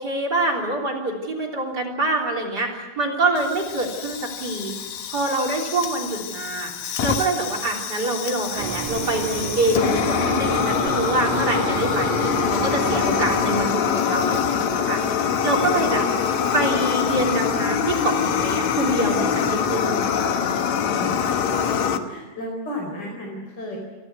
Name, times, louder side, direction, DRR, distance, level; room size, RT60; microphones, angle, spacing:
voice 1, 0.0-4.7 5.1-6.7 7.0-15.0 15.4-16.0 16.5-20.1, right 2 dB, 25° right, -1 dB, 3.5 m, -25 dB
Fire, 3.4-22.0, left 7 dB, 80° left, 1.6 m, -24 dB
sound 1, 8.6-13.7, right 8 dB, 90° right, 3.3 m, -30 dB
voice 2, 20.6-23.8, left 1 dB, 25° left, 0 dB, 4.7 m, -34 dB
28.5 x 13.0 x 9.6 m, 1.3 s
omnidirectional pair, 5.0 m